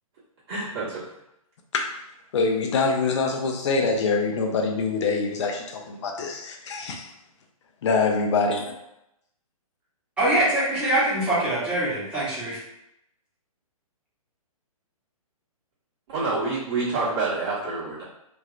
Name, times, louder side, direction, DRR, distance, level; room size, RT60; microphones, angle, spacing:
voice 1, 0.5-1.0 16.1-18.0, right 3 dB, 45° right, -11 dB, 1.5 m, -27 dB
voice 2, 2.3-7.1 7.8-8.6, left 4 dB, 50° left, 2 dB, 0.6 m, -24 dB
voice 3, 10.2-12.6, right 1 dB, 5° right, -11 dB, 1.0 m, -23 dB
3.1 x 2.8 x 2.4 m, 0.83 s
hypercardioid pair, 140°, 19 cm